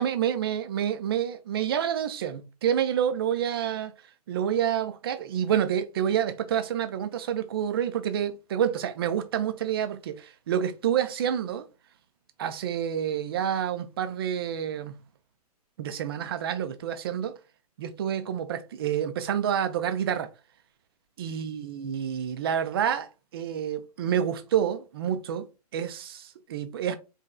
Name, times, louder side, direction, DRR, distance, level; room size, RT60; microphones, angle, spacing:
voice 1, 0.0-3.9 4.3-11.7 12.4-15.0 15.8-17.4 17.8-20.3 21.2-25.5 25.7-26.9, right 9 dB, 35° right, 0.5 m, -28 dB
4.1 x 3.2 x 2.3 m
figure-of-eight pair, 120°, 20 cm